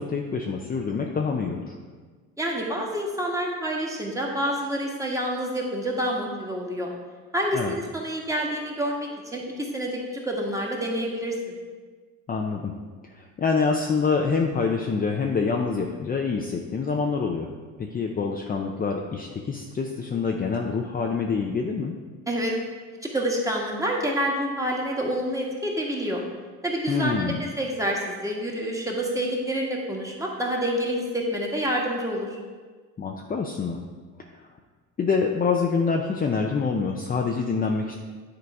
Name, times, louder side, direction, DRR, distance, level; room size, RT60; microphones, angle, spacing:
voice 1, 0.0-1.8 7.5-7.7 12.3-12.7 13.1-17.5 17.8-21.9 26.9-27.4 33.0-33.8 35.0-38.0, left 5 dB, 25° left, 1 dB, 0.6 m, -26 dB
voice 2, 2.4-6.9 7.3-11.4 22.3-22.5 23.0-26.2 26.6-32.3, equal, 10° right, -1 dB, 1.5 m, -28 dB
9.6 x 3.9 x 4.7 m, 1.5 s
cardioid pair, 105°, 37 cm